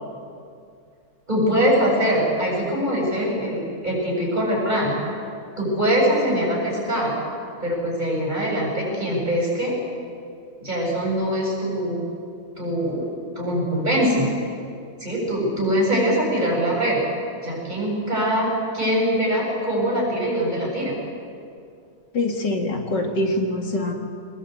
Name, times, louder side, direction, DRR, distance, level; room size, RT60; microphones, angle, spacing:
voice 1, 1.3-4.9 5.6-7.1 7.6-9.8 10.6-12.0 12.6-13.1 13.4-14.3 15.0-17.0 17.4-20.9, equal, 25° right, -3 dB, 7.9 m, -22 dB
voice 2, 22.1-23.9, left 2 dB, 75° left, 2 dB, 2.7 m, -24 dB
24.5 x 20.5 x 8.5 m, 2.4 s
omnidirectional pair, 1.9 m